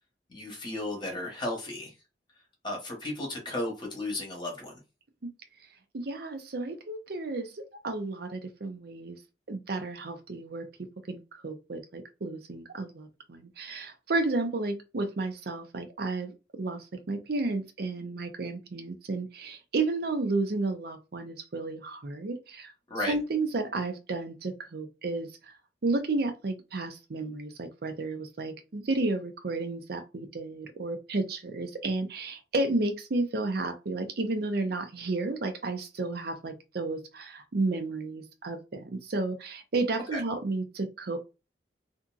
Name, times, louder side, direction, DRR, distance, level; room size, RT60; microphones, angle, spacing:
voice 1, 0.3-1.9 2.6-4.8 22.9-23.1 40.1-40.2, left 1 dB, 25° left, 1.0 m, -34 dB
voice 2, 5.9-9.2 9.5-10.7 11.1-16.3 16.6-22.7 23.1-25.5 25.8-41.2, right 2 dB, 60° right, 0.6 m, -32 dB
2.7 x 2.5 x 2.3 m
head